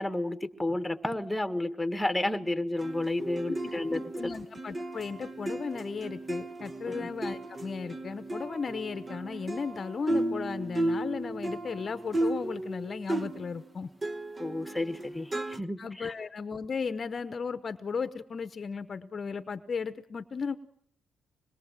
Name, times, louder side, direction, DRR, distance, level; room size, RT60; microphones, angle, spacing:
voice 1, 0.0-4.3 6.9-7.1 14.4-16.1, left 1 dB, 5° left, 9 dB, 1.7 m, -31 dB
sound 1, 2.8-13.7 14.0-15.6, right 1 dB, 25° right, 1.2 m, -35 dB
voice 2, 3.5-13.9 15.8-20.6, left 5 dB, 40° left, 12 dB, 1.0 m, -36 dB
26.0 x 21.5 x 7.5 m, 0.65 s
cardioid pair, 90°, 0 cm